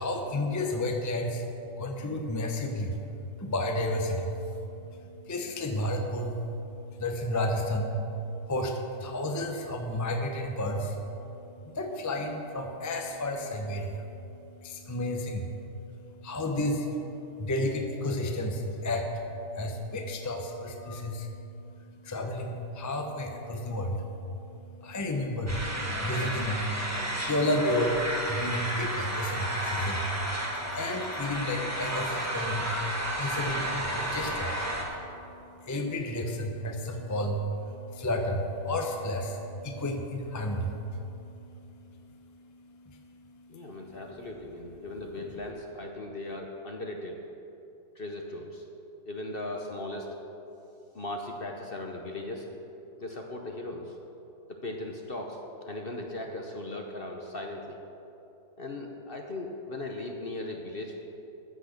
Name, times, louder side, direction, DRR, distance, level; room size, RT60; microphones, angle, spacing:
voice 1, 0.0-44.2, left 1 dB, 20° left, 3 dB, 0.5 m, -32 dB
sound 1, 25.5-34.8, right 1 dB, 10° right, 1.3 m, -32 dB
voice 2, 43.5-47.2 48.0-48.6 49.1-50.1 50.9-52.5 53.0-53.9 54.5-55.4 55.7-57.8 58.6-61.0, left 2 dB, 45° left, 2 dB, 0.8 m, -38 dB
14.0 x 6.3 x 6.6 m, 2.9 s
omnidirectional pair, 1.9 m